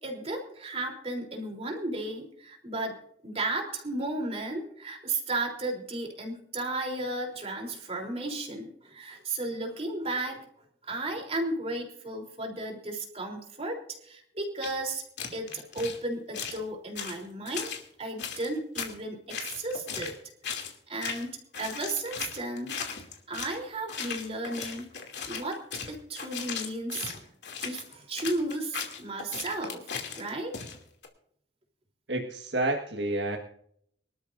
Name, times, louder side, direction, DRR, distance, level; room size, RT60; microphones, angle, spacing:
voice 1, 0.0-2.9 3.2-10.4 10.8-15.0 15.3-20.1 20.9-22.8 23.3-24.9 25.3-25.6 25.9-27.3 27.6-29.8 30.2-30.6, right 2 dB, 35° right, 1 dB, 3.5 m, -34 dB
sound 1, 14.6-14.7 15.2-16.0 16.3-16.6 17.0-17.8 18.2-18.9 19.3-20.2 20.4-20.8 21.0-21.3 21.5-23.6 23.9-31.1, left 6 dB, 70° left, 2.7 m, -37 dB
voice 2, 32.1-33.4, right 2 dB, 80° right, 1 dB, 1.6 m, -29 dB
24.5 x 13.0 x 2.6 m, 0.67 s
head